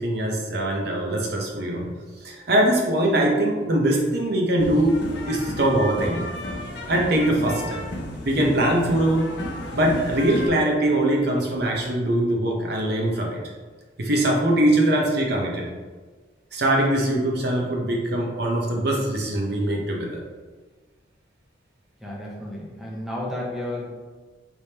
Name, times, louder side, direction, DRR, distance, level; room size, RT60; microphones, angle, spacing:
voice 1, 0.0-1.9 2.2-5.0 5.3-6.2 6.9-7.8 8.2-9.3 9.7-13.4 14.0-15.7 16.5-20.2, right 1 dB, 60° right, -1 dB, 0.8 m, -22 dB
sound 1, 4.6-10.5, equal, 65° left, 0.8 m, -33 dB
voice 2, 22.0-23.9, left 1 dB, ahead, -4 dB, 0.8 m, -32 dB
4.8 x 3.4 x 2.8 m, 1.4 s
head